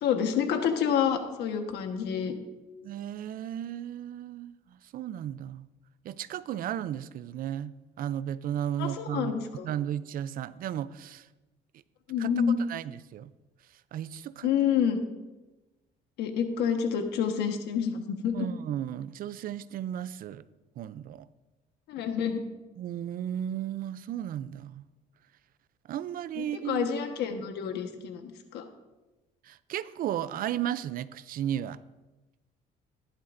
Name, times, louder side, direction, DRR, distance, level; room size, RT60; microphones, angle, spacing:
voice 1, 0.0-2.3 8.8-9.7 12.1-12.6 14.4-15.0 16.2-18.5 21.9-22.4 26.4-28.6, left 7 dB, 80° left, 6 dB, 1.3 m, -28 dB
voice 2, 2.8-4.5 4.9-5.6 6.0-9.4 9.6-11.3 12.2-13.3 13.9-14.5 18.3-20.4 20.8-21.3 22.8-24.8 25.9-26.9 29.4-31.8, right 10 dB, 60° right, 16 dB, 0.5 m, -34 dB
15.0 x 11.5 x 2.6 m, 1.1 s
cardioid pair, 110°, 17 cm